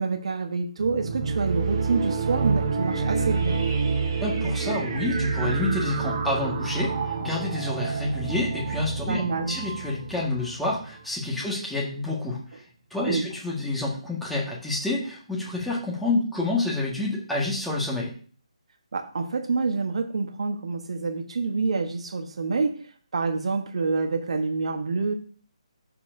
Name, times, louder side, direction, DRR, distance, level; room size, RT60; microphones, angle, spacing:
voice 1, 0.0-3.6 9.1-9.6 13.0-13.3 18.9-22.9 23.1-25.1, right 4 dB, 60° right, 4 dB, 1.1 m, -27 dB
sound 1, 0.8-11.0, right 4 dB, 40° right, 1.9 m, -28 dB
voice 2, 4.2-12.6 12.9-18.1, left 2 dB, ahead, -5 dB, 1.6 m, -28 dB
13.5 x 4.5 x 2.7 m, 0.43 s
figure-of-eight pair, 150°, 4 cm